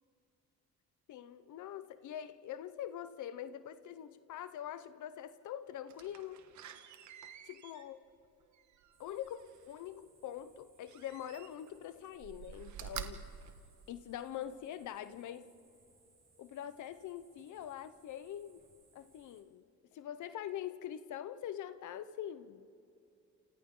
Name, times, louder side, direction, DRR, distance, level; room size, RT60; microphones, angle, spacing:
voice 1, 1.1-6.4 7.4-8.0 9.0-13.2 13.9-15.5 16.4-18.6 18.9-19.6 19.9-22.7, left 10 dB, 75° left, 13 dB, 0.9 m, -44 dB
Slam, 5.9-9.7 10.8-11.8 12.1-14.4 14.9-15.0, right 9 dB, 70° right, 1.4 m, -49 dB
sound 1, 8.9-19.4, right 3 dB, 30° right, 7.4 m, -69 dB
29.0 x 28.0 x 3.9 m, 2.6 s
cardioid pair, 90°, 30 cm